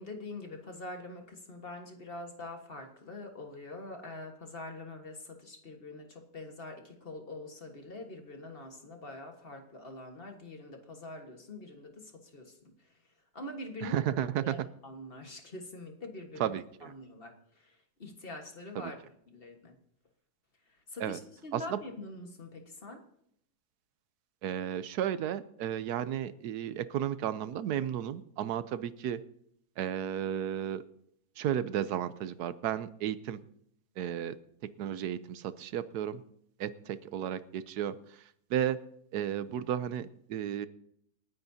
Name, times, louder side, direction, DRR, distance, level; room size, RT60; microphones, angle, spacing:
voice 1, 0.0-12.9 13.3-14.1 14.4-16.5 16.8-19.0 19.3-19.8 20.9-23.0, left 2 dB, 40° left, 4 dB, 1.6 m, -44 dB
voice 2, 13.8-14.6 16.4-16.9 18.7-18.9 21.0-21.2 21.5-21.8 24.4-29.2 29.8-30.8 31.4-33.4 34.0-34.4 34.6-36.2 36.6-38.8 39.1-40.7, right 10 dB, 90° right, 14 dB, 1.2 m, -33 dB
28.0 x 9.5 x 2.8 m, 0.71 s
omnidirectional pair, 1.6 m